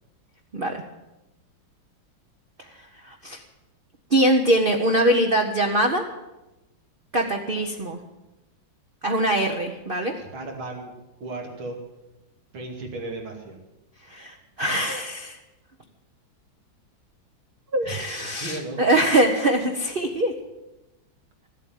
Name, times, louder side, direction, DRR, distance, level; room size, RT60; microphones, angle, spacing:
voice 1, 3.0-3.4 4.1-6.1 7.1-8.0 9.0-10.1 14.1-15.4 17.7-20.3, right 1 dB, 35° right, 2 dB, 1.0 m, -23 dB
voice 2, 10.1-10.9 11.2-11.8 12.5-13.6 17.8-18.8, right 2 dB, 85° right, 1 dB, 3.3 m, -35 dB
15.0 x 8.3 x 9.2 m, 0.99 s
omnidirectional pair, 2.1 m